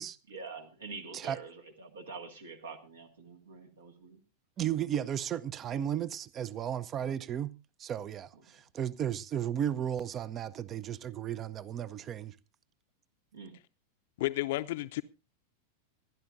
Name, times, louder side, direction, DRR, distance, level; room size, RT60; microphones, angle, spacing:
voice 1, 0.3-4.2 5.7-5.8 7.0-7.1 8.3-8.6 13.3-13.5, right 4 dB, 70° right, 2.0 m, -46 dB
voice 2, 4.6-7.5 7.8-12.4, right 10 dB, 30° right, 0.6 m, -34 dB
voice 3, 14.2-15.0, left 17 dB, 55° left, 0.7 m, -32 dB
26.0 x 11.0 x 2.6 m
figure-of-eight pair, 90°, 0 cm